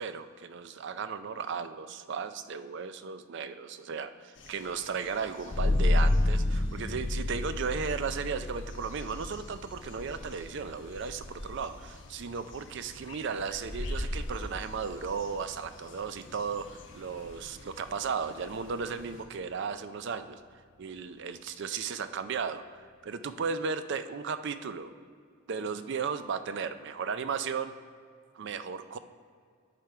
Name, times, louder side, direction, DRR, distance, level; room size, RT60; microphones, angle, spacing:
voice 1, 0.0-24.9 25.5-27.7 28.3-29.0, right 5 dB, 55° right, 11 dB, 0.4 m, -35 dB
sound 1, 4.3-19.3, left 1 dB, 60° left, 0.9 m, -45 dB
sound 2, 5.5-16.8, left 1 dB, 25° left, 0.3 m, -32 dB
10.5 x 5.1 x 4.6 m, 2.2 s
head